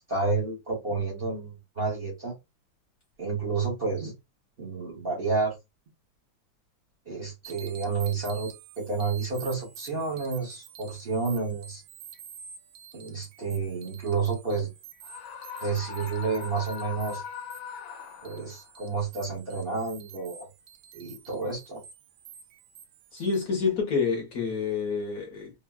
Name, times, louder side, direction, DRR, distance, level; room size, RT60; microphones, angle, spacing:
voice 1, 0.0-2.4 3.2-4.1 4.6-5.5 7.1-11.8 12.9-14.7 15.6-17.2 18.2-20.5 20.9-21.8, right 4 dB, 45° right, 0.8 m, -30 dB
sound 1, 7.4-23.4, right 8 dB, 85° right, 1.4 m, -49 dB
Screaming, 15.0-18.7, left 7 dB, 85° left, 1.3 m, -40 dB
voice 2, 23.1-25.5, left 5 dB, 55° left, 1.1 m, -28 dB
3.4 x 2.1 x 2.3 m
omnidirectional pair, 2.1 m